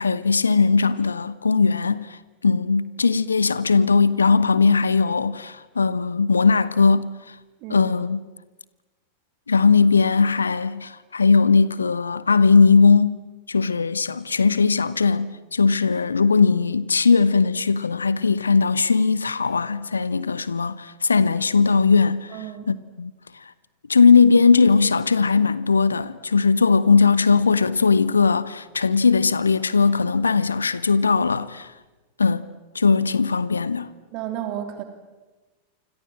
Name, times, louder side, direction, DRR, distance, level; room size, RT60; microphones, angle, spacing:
voice 1, 0.0-2.2 2.4-7.1 7.7-8.2 9.5-13.2 13.5-23.1 23.9-31.7 32.2-32.5 32.7-33.9, left 4 dB, 75° left, 0.9 m, -19 dB
voice 2, 22.3-22.7 34.1-34.8, right 11 dB, 45° right, 3.1 m, -32 dB
28.5 x 26.0 x 7.6 m
figure-of-eight pair, 90°, 0 cm